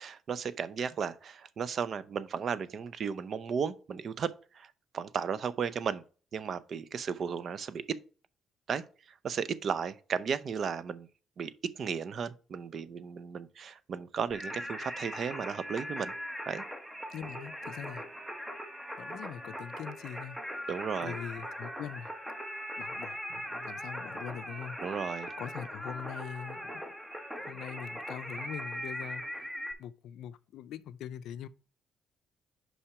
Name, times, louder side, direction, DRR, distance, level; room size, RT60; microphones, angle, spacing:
voice 1, 0.0-4.7 4.9-6.0 6.3-8.0 8.7-8.8 9.2-11.1 11.4-11.5 11.8-16.1 16.5-16.6 20.7-21.2 24.8-25.3, right 6 dB, 55° right, 0.5 m, -34 dB
Singing, 14.3-29.7, equal, 5° right, 1.2 m, -40 dB
voice 2, 17.1-18.0 19.0-20.4 21.0-22.1 22.8-24.8 25.4-26.7 27.4-29.5 29.8-31.5, left 9 dB, 80° left, 0.4 m, -42 dB
5.8 x 5.5 x 4.7 m
cardioid pair, 90°, 0 cm